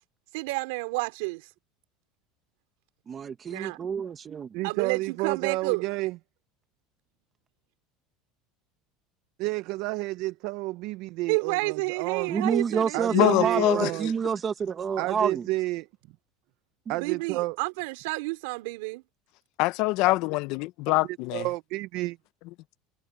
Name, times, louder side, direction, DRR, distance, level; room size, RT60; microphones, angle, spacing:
voice 1, 0.3-1.5 3.5-3.8 4.6-5.9 11.3-13.6 17.0-19.0, right 26 dB, 75° right, 4.0 m, -30 dB
voice 2, 3.1-4.6 12.3-15.5 16.9-17.0, right 6 dB, 20° right, 0.9 m, -28 dB
voice 3, 4.5-6.2 9.4-12.3 12.9-14.1 15.0-15.9 16.9-17.6 21.3-22.2, right 20 dB, 50° right, 0.6 m, -30 dB
voice 4, 13.1-13.9 19.6-21.5, left 21 dB, 50° left, 0.5 m, -24 dB
cardioid pair, 175°, 0 cm